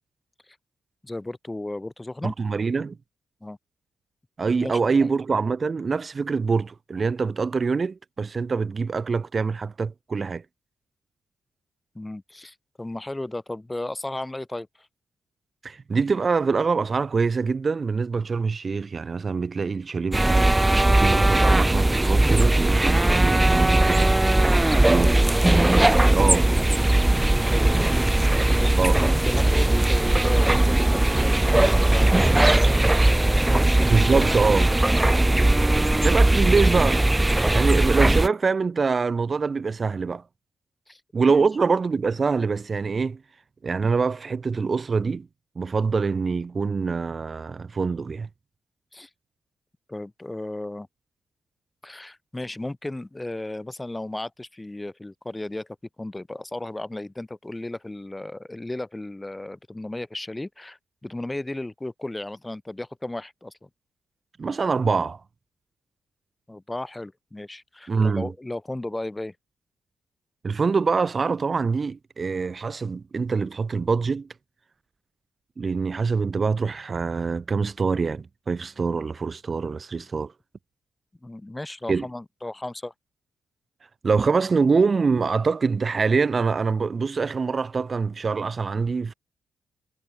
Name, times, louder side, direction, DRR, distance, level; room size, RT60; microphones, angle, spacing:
voice 1, 1.0-2.3 3.4-3.6 4.6-5.1 11.9-14.7 24.8-25.2 26.0-26.2 27.4-28.2 28.5-34.4 35.0-35.2 40.9-41.0 41.3-41.4 48.9-49.1 49.9-50.9 51.8-55.7 56.0-63.7 66.5-69.3 81.2-82.9, left 2 dB, 15° left, 1.7 m, -35 dB
voice 2, 2.2-3.0 4.4-10.4 15.6-24.2 24.8-25.2 26.1-26.5 28.8-29.0 33.9-34.7 36.0-37.0 37.5-40.2 41.1-43.2 43.6-45.3 45.6-48.3 64.4-65.2 67.9-68.3 70.4-74.3 75.6-80.3 81.9-82.1 84.0-89.1, right 4 dB, 35° right, 1.2 m, -24 dB
sound 1, 20.1-38.3, right 1 dB, 10° right, 1.0 m, -19 dB
cardioid pair, 95°, 0 cm